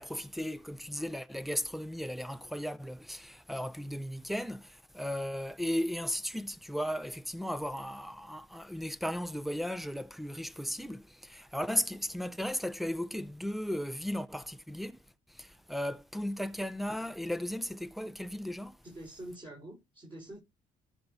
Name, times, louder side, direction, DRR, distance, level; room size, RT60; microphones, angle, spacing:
voice 1, 0.0-15.0 15.3-18.8, equal, ahead, 0.6 m, -36 dB
voice 2, 18.8-20.4, right 1 dB, 30° right, 5.3 m, -46 dB
13.0 x 5.5 x 4.1 m
cardioid pair, 110°, 17 cm